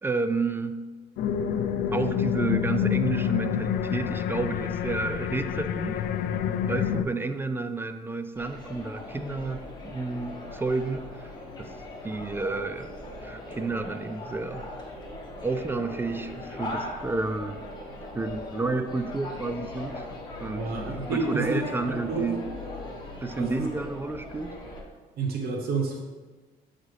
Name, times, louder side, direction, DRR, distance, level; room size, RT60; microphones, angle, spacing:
voice 1, 0.0-0.8 1.9-6.1 6.7-11.3 11.6-11.7 12.0-12.9 13.2-14.7 15.4-17.6 18.1-20.1 20.4-22.4 23.2-24.6, right 3 dB, 15° right, 9 dB, 0.3 m, -31 dB
sound 1, 1.2-7.0, left 8 dB, 65° left, 0.4 m, -27 dB
sound 2, 8.3-24.8, left 1 dB, 25° left, 1.2 m, -39 dB
voice 2, 20.5-21.6 21.9-22.3 23.4-23.7 25.2-26.0, right 4 dB, 65° right, 1 dB, 0.9 m, -29 dB
7.6 x 4.0 x 3.2 m, 1.3 s
cardioid pair, 110°, 17 cm